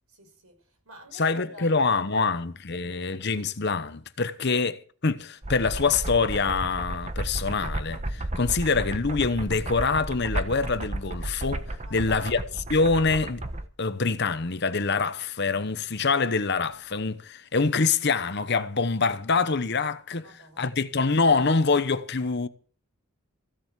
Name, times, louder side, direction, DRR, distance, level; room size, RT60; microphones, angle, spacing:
voice 1, 0.1-2.3 2.7-3.1 11.8-12.4 20.2-20.8, right 1 dB, 75° right, 5.7 m, -48 dB
voice 2, 1.1-12.4 12.7-13.4 13.8-22.5, left 4 dB, 50° left, 0.9 m, -25 dB
sound 1, 5.4-13.7, right 1 dB, 30° right, 1.1 m, -33 dB
15.5 x 7.7 x 8.1 m
head